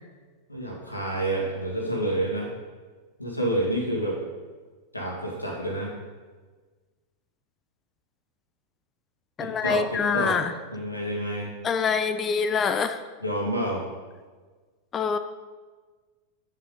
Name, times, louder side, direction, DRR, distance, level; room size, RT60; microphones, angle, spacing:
voice 1, 0.5-2.5 3.2-4.2 4.9-5.9 9.4-10.4 10.7-11.5 13.2-13.8, right 1 dB, 85° left, -1 dB, 2.2 m, -28 dB
voice 2, 9.4-10.5 11.6-13.0 14.9-15.2, left 6 dB, 25° left, 10 dB, 0.6 m, -25 dB
9.8 x 7.5 x 3.9 m, 1.4 s
figure-of-eight pair, 90°, 0 cm